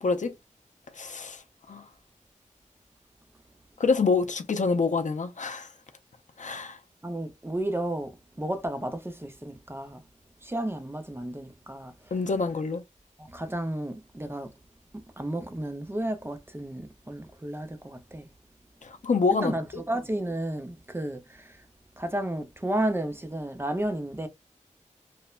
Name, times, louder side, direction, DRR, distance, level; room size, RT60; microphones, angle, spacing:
voice 1, 0.0-0.3 1.0-1.4 1.7-1.8 3.8-5.7 6.4-6.8 12.1-12.8 18.8-19.5, left 4 dB, 70° left, 0.4 m, -26 dB
voice 2, 7.0-10.0 10.4-12.1 13.2-14.5 14.9-18.3 19.3-21.6 22.0-24.3, right 1 dB, 20° right, 0.5 m, -32 dB
3.0 x 2.1 x 2.3 m
wide cardioid pair, 65°, 13 cm